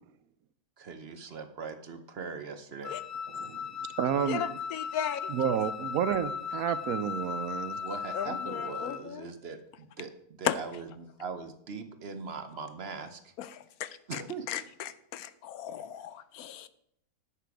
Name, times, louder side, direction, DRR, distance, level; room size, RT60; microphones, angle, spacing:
voice 1, 0.8-3.0 7.8-13.3 14.1-14.5 16.0-16.1, right 5 dB, 50° right, 9 dB, 0.9 m, -41 dB
Wind instrument woodwind instrument, 2.8-9.1, left 6 dB, 50° left, 0.6 m, -37 dB
voice 2, 3.4-3.7 4.0-4.4 5.3-7.8, right 9 dB, 75° right, 14 dB, 1.0 m, -30 dB
voice 3, 4.3-5.3 8.1-9.3 10.4-10.5 13.4-14.2 14.5-16.7, left 10 dB, 80° left, 14 dB, 1.1 m, -36 dB
10.5 x 7.7 x 4.7 m, 0.75 s
omnidirectional pair, 1.6 m